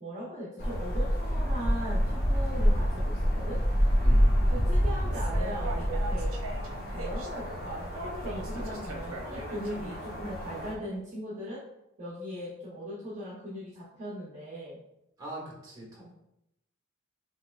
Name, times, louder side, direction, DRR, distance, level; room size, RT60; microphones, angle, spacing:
voice 1, 0.0-3.6 4.5-6.3 6.9-11.6 12.0-14.8, equal, 35° right, -7 dB, 0.9 m, -39 dB
sound 1, 0.6-10.7, equal, 45° left, 0.9 m, -28 dB
voice 2, 4.0-4.7 15.2-16.1, right 1 dB, 20° right, -5 dB, 1.4 m, -43 dB
sound 2, 5.1-10.7, right 2 dB, 80° right, 0.7 m, -42 dB
5.7 x 3.1 x 2.4 m, 0.86 s
head